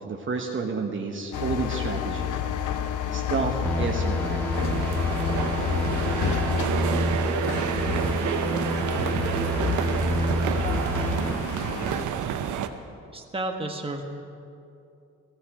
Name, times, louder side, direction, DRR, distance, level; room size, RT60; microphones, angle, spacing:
voice 1, 0.0-2.4 3.1-4.7, right 4 dB, 40° right, 2 dB, 1.3 m, -30 dB
sound 1, 1.3-12.0, left 8 dB, 85° left, 0.8 m, -30 dB
sound 2, 3.6-11.3, equal, 5° left, 2.3 m, -29 dB
sound 3, 4.5-12.7, right 8 dB, 75° right, 0.9 m, -29 dB
voice 2, 13.1-14.0, right 2 dB, 20° right, 2 dB, 1.5 m, -31 dB
17.0 x 13.5 x 5.0 m, 2.6 s
cardioid pair, 90°, 30 cm